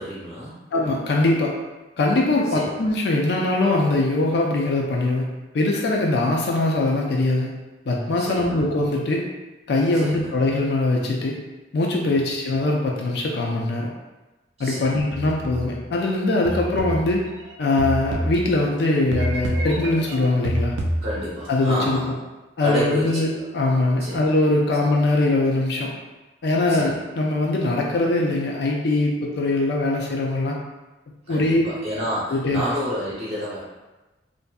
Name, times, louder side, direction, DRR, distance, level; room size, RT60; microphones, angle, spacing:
voice 1, 0.0-0.5 2.5-2.7 8.2-8.6 9.9-10.3 14.6-15.0 21.0-22.1 22.6-23.4 24.0-24.3 26.7-27.0 31.3-33.6, equal, 35° right, -9 dB, 0.7 m, -30 dB
voice 2, 0.7-1.5 2.0-5.3 5.5-7.5 7.9-9.3 9.7-11.4 11.7-13.9 14.6-17.3 17.6-20.7 21.5-22.1 22.6-23.3 23.5-25.9 26.4-30.6 31.3-31.7 32.3-32.6, left 2 dB, 60° left, -1 dB, 0.4 m, -22 dB
sound 1, 15.1-15.9 16.4-18.8 19.1-21.5, right 1 dB, 90° right, 0.4 m, -28 dB
2.6 x 2.5 x 2.2 m, 1.1 s
head